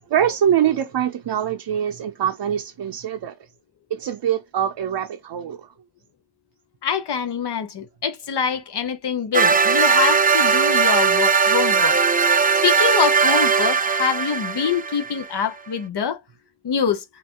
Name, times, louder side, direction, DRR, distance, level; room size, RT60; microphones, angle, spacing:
voice 1, 0.1-3.4 3.9-5.7, right 9 dB, 80° right, 0.6 m, -23 dB
voice 2, 6.8-12.0 12.6-16.2 16.6-17.0, left 7 dB, 75° left, 0.8 m, -25 dB
sound 1, 9.3-15.2, right 5 dB, 25° right, 0.3 m, -18 dB
5.4 x 2.5 x 3.6 m
wide cardioid pair, 90°, 40 cm